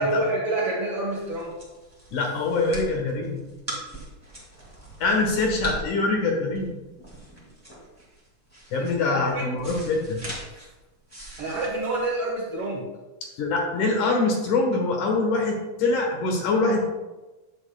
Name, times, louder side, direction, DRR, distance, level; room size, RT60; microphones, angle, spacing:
voice 1, 0.0-1.5 8.8-9.5 11.4-12.9, right 2 dB, 55° right, -3 dB, 1.9 m, -27 dB
sound 1, 0.8-12.7, right 1 dB, 10° right, 1.1 m, -41 dB
voice 2, 2.1-3.4 5.0-6.7 8.7-10.2 13.4-17.0, left 3 dB, 75° left, 1 dB, 2.7 m, -24 dB
9.8 x 7.2 x 2.2 m, 1.1 s
omnidirectional pair, 3.7 m